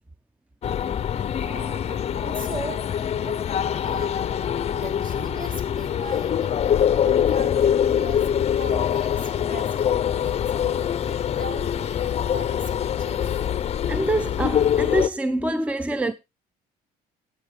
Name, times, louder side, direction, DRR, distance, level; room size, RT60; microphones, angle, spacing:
sound 1, 0.6-15.1, left 9 dB, 40° left, 0.5 m, -24 dB
voice 1, 1.2-4.2 4.7-6.6 6.9-13.3, right 2 dB, 55° right, 3.5 m, -40 dB
voice 2, 13.9-16.1, right 1 dB, 10° right, 0.5 m, -25 dB
18.0 x 8.0 x 3.2 m
cardioid pair, 110°, 17 cm